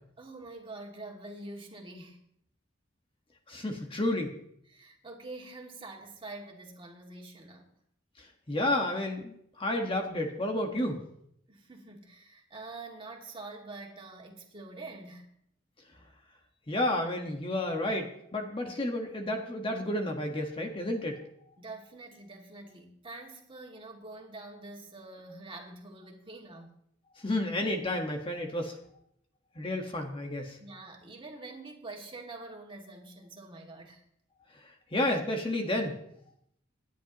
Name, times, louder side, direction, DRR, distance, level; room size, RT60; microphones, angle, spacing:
voice 1, 0.2-2.2 4.7-7.7 11.5-15.3 21.6-26.7 30.6-34.0, right 2 dB, 25° right, 0 dB, 2.4 m, -46 dB
voice 2, 3.5-4.3 8.2-11.0 16.7-21.2 27.2-28.7 29.5-30.6 34.9-36.0, left 1 dB, 25° left, 3 dB, 1.5 m, -31 dB
27.0 x 10.5 x 3.0 m, 0.72 s
head